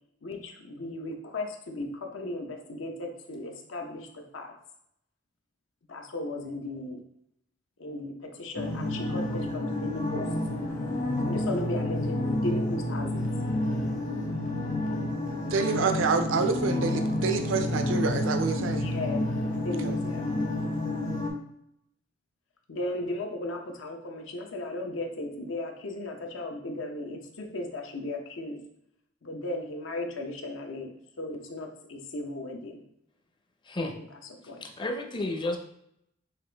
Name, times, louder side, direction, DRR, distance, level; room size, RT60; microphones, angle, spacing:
voice 1, 0.2-4.5 5.9-7.0 7.8-10.3 11.2-13.2 18.8-19.2 19.6-20.3 22.7-28.6 29.2-32.8 34.4-34.6, left 2 dB, 80° left, 3 dB, 0.7 m, -36 dB
sound 1, 8.6-21.3, left 1 dB, 45° left, 1.0 m, -29 dB
voice 2, 15.5-18.9 19.8-19.9, right 4 dB, 80° right, 7 dB, 0.5 m, -27 dB
voice 3, 33.6-33.9 34.6-35.6, left 2 dB, 25° left, 3 dB, 0.5 m, -31 dB
5.7 x 2.5 x 3.3 m, 0.76 s
head